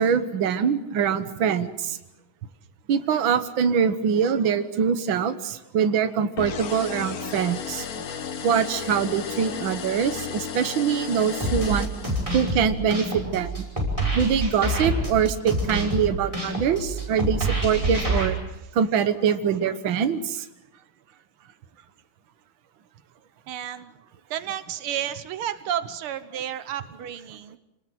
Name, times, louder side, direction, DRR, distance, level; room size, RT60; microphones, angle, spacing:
voice 1, 0.0-2.0 2.9-7.9 8.4-11.9 12.3-13.5 14.2-18.4 18.7-20.5, right 7 dB, 70° right, 9 dB, 1.9 m, -24 dB
sound 1, 6.4-12.5, left 7 dB, 50° left, 1.4 m, -34 dB
sound 2, 11.4-18.3, right 1 dB, 15° right, 5.7 m, -27 dB
voice 2, 21.4-21.9 23.5-23.9 24.3-27.6, right 10 dB, 90° right, 12 dB, 1.9 m, -32 dB
27.5 x 19.0 x 7.7 m, 0.92 s
omnidirectional pair, 2.3 m